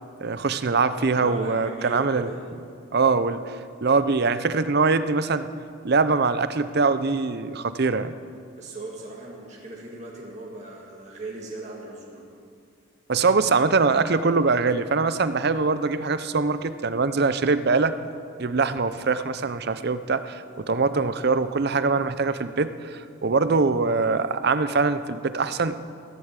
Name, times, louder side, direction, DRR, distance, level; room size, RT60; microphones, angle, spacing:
voice 1, 0.2-2.3 2.9-3.6 3.8-5.5 5.8-8.1 13.1-17.9 18.4-25.8, right 4 dB, 50° right, 12 dB, 0.6 m, -23 dB
voice 2, 1.1-2.4 8.6-12.3, right 2 dB, 35° right, -4 dB, 1.9 m, -38 dB
15.0 x 11.0 x 7.5 m, 2.3 s
head